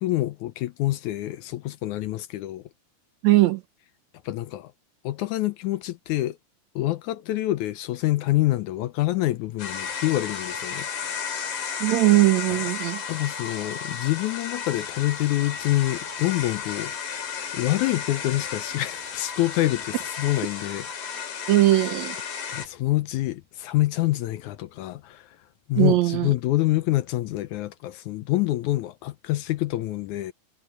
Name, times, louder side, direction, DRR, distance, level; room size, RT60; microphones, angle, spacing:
voice 1, 0.0-2.6 4.3-4.7 5.0-6.4 6.8-11.3 13.1-16.9 17.5-20.9 22.5-25.3 25.7-30.3, left 16 dB, 80° left, 1.9 m, -26 dB
voice 2, 3.2-3.6 11.8-13.0 21.5-22.2 25.8-26.3, right 16 dB, 75° right, 1.7 m, -19 dB
sound 1, 9.6-22.7, left 6 dB, 60° left, 4.5 m, -33 dB
omnidirectional pair, 4.0 m